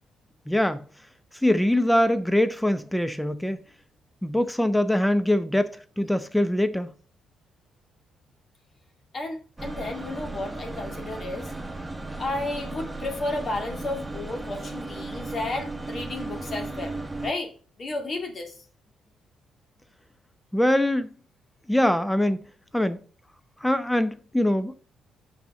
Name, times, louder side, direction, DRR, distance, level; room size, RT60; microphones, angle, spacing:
voice 1, 0.5-0.8 1.4-3.6 4.2-6.9 20.5-21.1 21.7-22.4 22.7-23.0 23.6-24.7, left 1 dB, 5° left, 0.7 m, -23 dB
voice 2, 9.1-11.5 12.2-17.5 17.8-18.6, left 2 dB, 50° left, 2.2 m, -32 dB
sound 1, 9.6-17.3, right 2 dB, 15° right, 1.4 m, -35 dB
5.9 x 5.6 x 4.9 m
hypercardioid pair, 50°, 0 cm